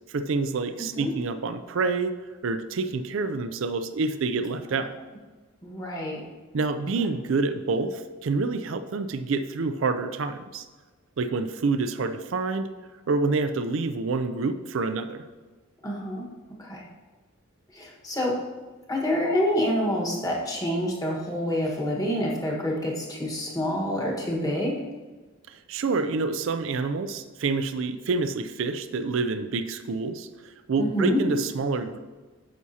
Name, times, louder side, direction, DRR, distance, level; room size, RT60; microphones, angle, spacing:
voice 1, 0.1-2.1 2.4-5.0 6.5-10.6 11.2-12.7 13.1-15.3 25.5-32.0, right 3 dB, 65° right, 9 dB, 0.4 m, -27 dB
voice 2, 5.6-6.2 15.8-16.3 16.6-16.8 17.7-18.3 18.9-24.7 30.8-31.2, equal, 15° left, -2 dB, 1.4 m, -27 dB
9.3 x 7.0 x 2.8 m, 1.3 s
head